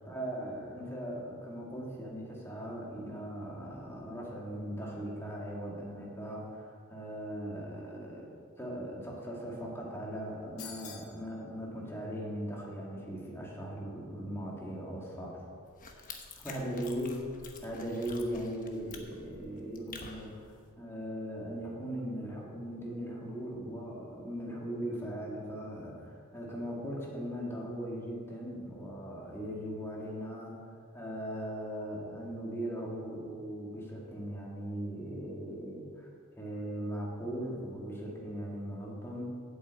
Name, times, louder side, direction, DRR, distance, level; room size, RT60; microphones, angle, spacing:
voice 1, 0.0-15.4 16.4-17.1 17.6-20.4 20.8-30.6 30.9-36.1 36.4-39.2, equal, 10° left, -4 dB, 2.1 m, -39 dB
sound 1, 10.6-11.2, left 7 dB, 65° left, 1.7 m, -45 dB
sound 2, 15.6-20.6, left 4 dB, 35° left, 1.1 m, -49 dB
8.5 x 7.9 x 8.2 m, 2.1 s
head